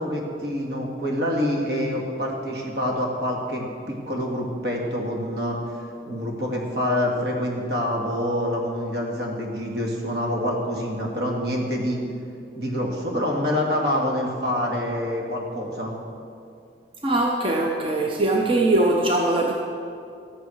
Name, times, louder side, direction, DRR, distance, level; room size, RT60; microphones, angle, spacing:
voice 1, 0.0-5.8 6.1-12.0 12.6-15.9, equal, 65° right, -1 dB, 2.3 m, -26 dB
voice 2, 17.0-19.5, right 2 dB, 30° right, 0 dB, 0.8 m, -21 dB
13.0 x 9.4 x 6.5 m, 2.4 s
head